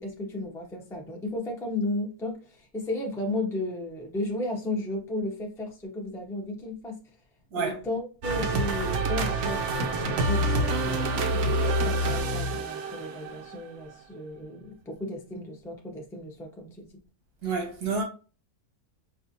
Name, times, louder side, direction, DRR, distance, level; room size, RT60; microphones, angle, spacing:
voice 1, 0.0-7.0 7.5-16.9, left 1 dB, 5° left, 0.4 m, -34 dB
sound 1, 8.2-13.7 13.9-14.0, right 2 dB, 65° right, 0.8 m, -27 dB
voice 2, 17.4-18.0, right 4 dB, 85° right, 1.6 m, -29 dB
5.4 x 2.4 x 2.7 m
omnidirectional pair, 1.6 m